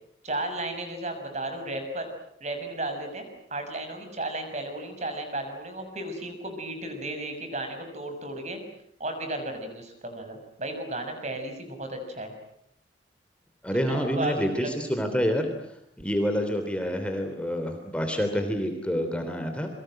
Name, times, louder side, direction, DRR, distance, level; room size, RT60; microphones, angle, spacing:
voice 1, 0.2-2.1 2.4-8.6 9.0-12.3 13.7-14.7, right 1 dB, 40° right, 6 dB, 6.4 m, -34 dB
voice 2, 13.6-15.4 16.0-19.7, equal, 5° left, 5 dB, 3.2 m, -27 dB
28.5 x 23.5 x 7.8 m, 0.73 s
head